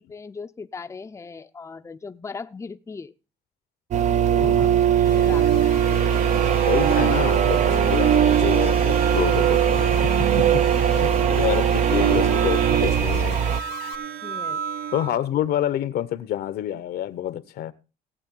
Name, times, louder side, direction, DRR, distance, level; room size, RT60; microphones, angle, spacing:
voice 1, 0.0-3.1 4.3-4.8 5.1-6.2 10.3-10.7 14.2-14.6, left 4 dB, 15° left, 0.6 m, -38 dB
sound 1, 3.9-13.6, right 8 dB, 45° right, 0.6 m, -21 dB
voice 2, 4.4-4.9 6.7-10.1 10.4-10.6 11.0-13.5 14.9-17.7, left 11 dB, 70° left, 1.0 m, -28 dB
sound 2, 4.9-15.2, right 10 dB, 60° right, 1.0 m, -26 dB
Alarm, 5.0-14.0, left 12 dB, 85° left, 1.7 m, -40 dB
18.5 x 8.3 x 3.8 m
cardioid pair, 110°, 17 cm